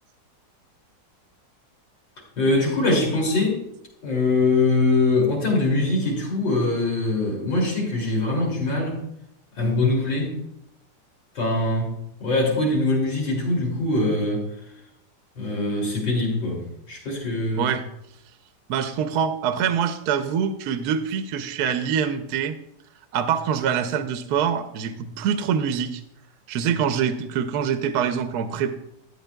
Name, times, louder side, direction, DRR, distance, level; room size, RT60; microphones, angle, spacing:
voice 1, 2.4-3.6 4.0-9.0 9.6-10.4 11.3-11.9 12.2-14.5 15.4-17.7, left 2 dB, 85° left, -1 dB, 3.4 m, -23 dB
voice 2, 18.7-22.6 23.1-26.0 26.5-28.7, right 7 dB, 70° right, 9 dB, 1.1 m, -25 dB
13.5 x 8.8 x 2.3 m, 0.80 s
omnidirectional pair, 2.0 m